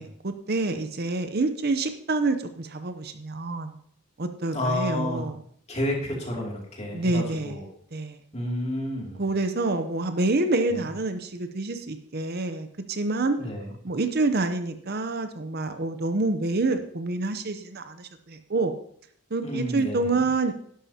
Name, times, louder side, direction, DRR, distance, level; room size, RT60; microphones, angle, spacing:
voice 1, 0.0-3.8 4.2-5.3 6.9-7.5 7.9-8.2 9.2-13.4 13.8-18.8 19.3-20.5, right 3 dB, 45° right, 8 dB, 0.7 m, -27 dB
voice 2, 4.5-5.2 5.7-7.7 8.3-9.2 10.7-10.9 13.4-13.7 19.4-20.3, left 1 dB, 30° left, -1 dB, 2.6 m, -30 dB
12.0 x 11.5 x 2.8 m, 0.64 s
head